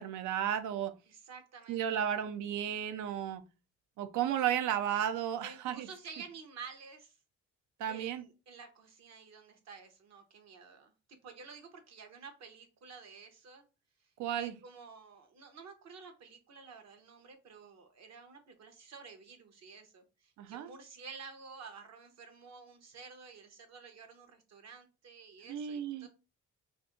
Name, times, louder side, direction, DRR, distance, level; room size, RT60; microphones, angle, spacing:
voice 1, 0.0-0.9 1.7-3.4 4.0-5.9 7.8-8.2 14.2-14.5 20.4-20.7 25.5-26.1, right 10 dB, 80° right, 0.5 m, -33 dB
voice 2, 1.1-2.1 5.4-7.2 7.9-13.6 14.0-26.1, right 5 dB, 60° right, 0.9 m, -51 dB
2.6 x 2.5 x 3.6 m
cardioid pair, 90°, 30 cm